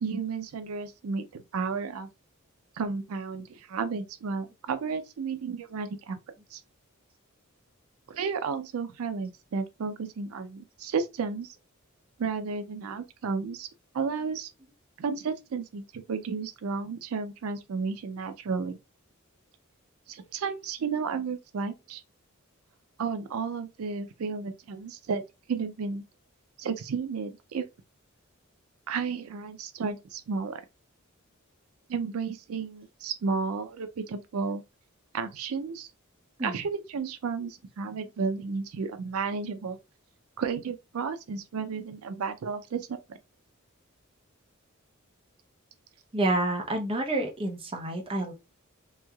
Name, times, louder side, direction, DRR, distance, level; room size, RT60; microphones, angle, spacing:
voice 1, 0.0-2.1 2.8-6.2 6.5-6.6 8.1-11.5 12.2-13.7 13.9-14.5 15.0-18.8 20.1-22.0 23.0-25.2 25.5-26.0 26.6-27.7 28.9-30.6 31.9-34.6 35.1-35.9 36.4-39.8 40.4-43.0, right 5 dB, 90° right, 0.4 m, -32 dB
voice 2, 46.1-48.3, right 1 dB, 25° right, 0.7 m, -28 dB
3.0 x 2.7 x 2.3 m
head